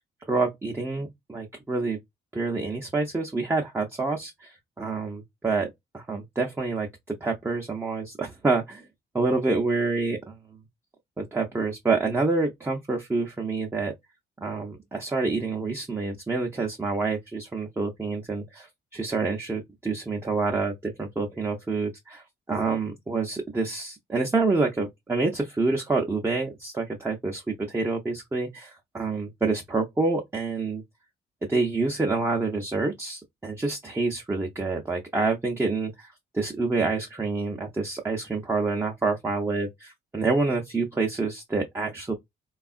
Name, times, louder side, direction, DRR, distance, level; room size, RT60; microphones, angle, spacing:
voice 1, 0.3-2.0 2.3-8.9 9.1-10.4 11.2-13.9 14.4-30.8 31.5-42.1, right 3 dB, 10° right, 0.6 m, -27 dB
3.4 x 2.3 x 2.4 m
cardioid pair, 90°, 20 cm